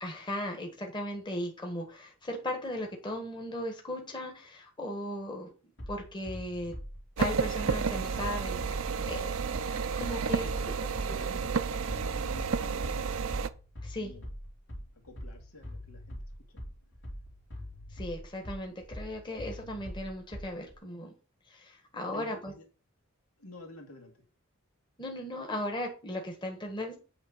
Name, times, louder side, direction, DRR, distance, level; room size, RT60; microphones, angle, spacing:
voice 1, 0.0-5.5 5.9-6.7 7.2-8.6 9.1-10.5 13.8-14.1 17.9-21.1 21.5-22.5 25.0-27.0, left 1 dB, 20° left, 2 dB, 1.4 m, -37 dB
Bass drum, 5.8-20.8, left 1 dB, 55° left, 2.8 m, -43 dB
sound 1, 7.2-13.5, right 5 dB, 70° right, 0.5 m, -31 dB
voice 2, 11.0-13.3 14.0-14.3 15.0-16.2 16.5-16.6 22.1-22.6 23.4-24.1, left 1 dB, 85° left, 2 dB, 2.3 m, -49 dB
8.8 x 3.4 x 6.5 m, 0.35 s
head